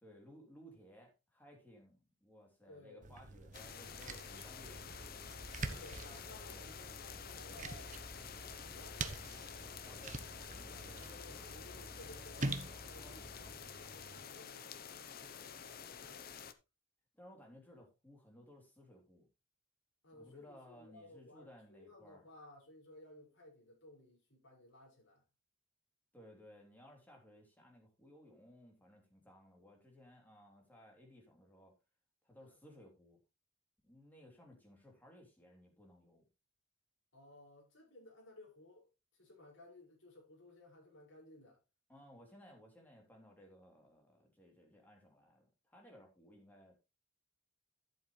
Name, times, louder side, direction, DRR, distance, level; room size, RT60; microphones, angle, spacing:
voice 1, 0.0-5.4 8.2-8.4 9.8-10.2 10.5-11.0 17.1-19.3 20.1-22.2 26.1-31.7 32.2-33.2 33.8-36.3 41.9-46.7, equal, 10° left, 3.1 m, -60 dB
voice 2, 2.7-3.1 5.6-7.9 8.6-9.6 10.7-12.6 12.9-16.5 20.0-25.2 32.4-32.6 37.1-38.9 39.1-41.6, left 2 dB, 65° left, 5.7 m, -58 dB
sound 1, 3.0-14.2, right 3 dB, 35° right, 0.9 m, -46 dB
sound 2, 3.5-16.5, left 7 dB, 45° left, 0.8 m, -50 dB
sound 3, 4.6-13.5, equal, 10° right, 1.8 m, -56 dB
11.5 x 7.9 x 3.2 m
head